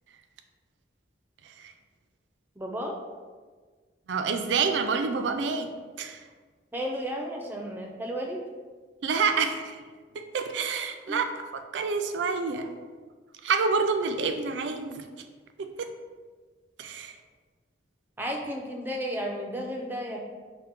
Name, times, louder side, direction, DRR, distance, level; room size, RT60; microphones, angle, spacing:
voice 1, 2.6-3.0 6.7-8.4 11.1-11.2 18.2-20.2, equal, 10° right, 1 dB, 0.5 m, -33 dB
voice 2, 4.1-5.7 6.0-6.2 9.0-9.7 10.2-12.7 13.4-15.0 15.6-15.9 16.8-17.1, right 5 dB, 80° right, 7 dB, 0.4 m, -28 dB
5.5 x 2.1 x 3.6 m, 1.5 s
head